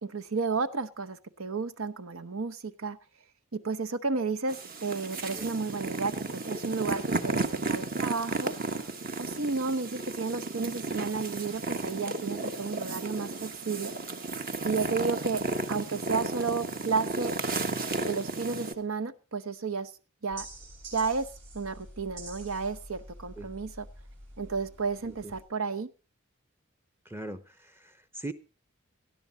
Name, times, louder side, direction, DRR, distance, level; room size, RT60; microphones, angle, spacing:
voice 1, 0.0-3.0 3.5-8.5 9.2-13.9 14.6-15.4 15.7-17.4 18.1-19.9 20.2-20.5 20.9-21.3 21.5-23.9 24.4-25.9, right 4 dB, 80° right, 12 dB, 0.9 m, -32 dB
sound 1, 4.5-18.7, right 3 dB, 40° right, 1.2 m, -33 dB
sound 2, 20.3-25.4, right 2 dB, 60° right, 5.9 m, -47 dB
voice 2, 27.0-28.3, right 2 dB, 10° right, 11 dB, 0.7 m, -41 dB
18.5 x 12.5 x 4.0 m, 0.32 s
head